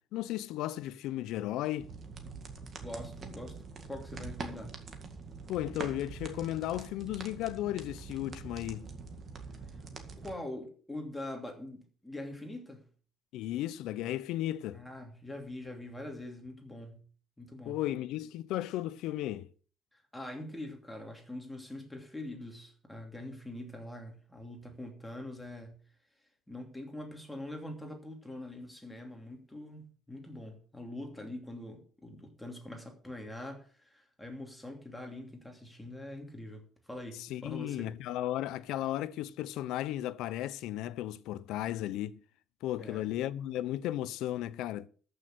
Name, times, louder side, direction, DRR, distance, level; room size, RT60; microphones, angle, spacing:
voice 1, 0.0-1.9 5.5-8.9 13.3-14.8 17.7-19.5 37.2-42.2 42.6-44.9, left 13 dB, 85° left, 0.7 m, -35 dB
sound 1, 1.8-10.3, right 4 dB, 35° right, 2.0 m, -44 dB
voice 2, 2.8-3.6 3.9-4.7 9.7-9.8 10.2-12.8 14.7-17.0 17.4-17.8 19.9-25.8 26.5-38.0 42.8-43.0, left 1 dB, 5° left, 2.8 m, -44 dB
14.0 x 6.6 x 6.7 m
cardioid pair, 155°, 0 cm